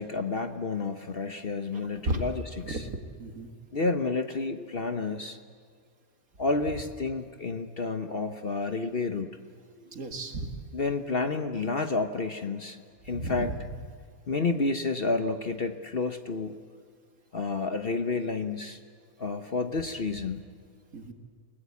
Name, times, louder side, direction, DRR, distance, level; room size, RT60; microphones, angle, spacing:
voice 1, 0.0-2.8 3.7-5.4 6.4-9.3 9.8-10.0 10.7-12.8 13.0-13.5 14.3-16.6 17.3-18.8 19.2-20.4, left 3 dB, 40° left, 7 dB, 1.1 m, -30 dB
voice 2, 1.7-2.2 2.6-3.5 9.9-10.5 13.1-13.7 20.9-21.1, right 2 dB, 65° right, 5 dB, 2.5 m, -34 dB
29.5 x 18.5 x 8.4 m, 2.1 s
omnidirectional pair, 1.6 m